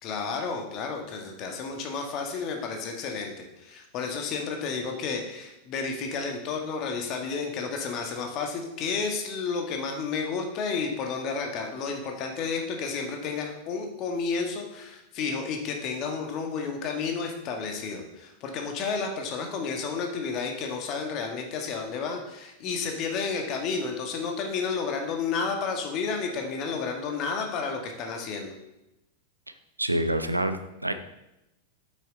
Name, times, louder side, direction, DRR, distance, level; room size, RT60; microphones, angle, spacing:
voice 1, 0.0-28.5, left 5 dB, 40° left, 3 dB, 1.5 m, -31 dB
voice 2, 29.8-30.9, right 1 dB, 85° right, 9 dB, 0.6 m, -27 dB
8.4 x 6.4 x 3.8 m, 0.92 s
figure-of-eight pair, 90°, 0 cm